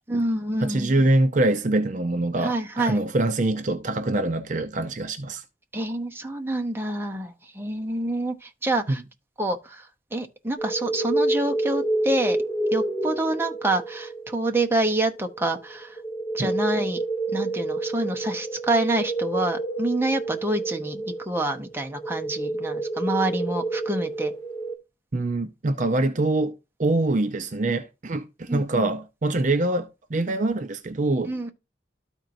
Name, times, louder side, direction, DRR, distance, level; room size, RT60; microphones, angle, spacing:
voice 1, 0.1-0.9 2.4-3.0 5.7-9.0 9.4-12.4 12.7-16.0 16.3-17.0 17.3-24.3 28.5-28.9 31.3-31.5, right 1 dB, 15° right, 0.8 m, -27 dB
voice 2, 0.6-5.4 16.4-16.5 25.1-31.5, right 2 dB, 45° right, 0.5 m, -24 dB
sound 1, 10.6-24.8, right 2 dB, 20° left, 1.6 m, -29 dB
13.0 x 4.4 x 2.6 m
head